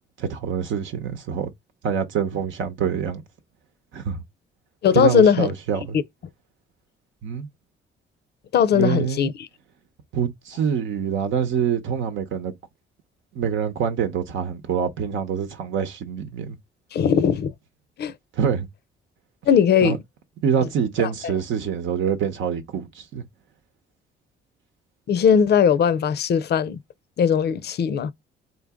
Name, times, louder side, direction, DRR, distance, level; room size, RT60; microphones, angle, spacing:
voice 1, 0.2-1.5 1.8-3.2 3.9-4.2 4.9-6.0 7.2-7.5 8.7-9.3 10.1-12.5 13.3-16.5 18.4-18.7 19.8-20.0 20.4-23.2, right 7 dB, 75° right, 0.8 m, -25 dB
voice 2, 4.8-5.5 8.5-9.5 16.9-17.5 18.0-18.1 19.5-20.0 20.6-20.7 21.0-21.1 25.1-26.8 27.2-28.1, left 7 dB, 55° left, 0.5 m, -19 dB
3.9 x 2.9 x 3.5 m
cardioid pair, 90°, 20 cm